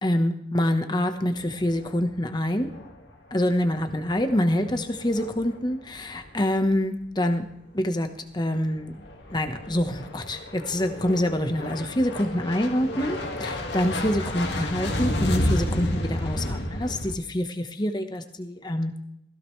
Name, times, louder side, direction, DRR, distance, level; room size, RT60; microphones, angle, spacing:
voice 1, 0.0-2.7 3.3-7.5 7.7-8.1 8.3-9.0 9.3-19.0, left 1 dB, 25° left, 7 dB, 1.1 m, -26 dB
sound 1, 1.4-2.3 2.6-3.0 3.4-5.8 6.1-6.5 8.6-17.1, left 1 dB, 70° left, 1.9 m, -31 dB
16.5 x 15.5 x 3.2 m, 0.78 s
head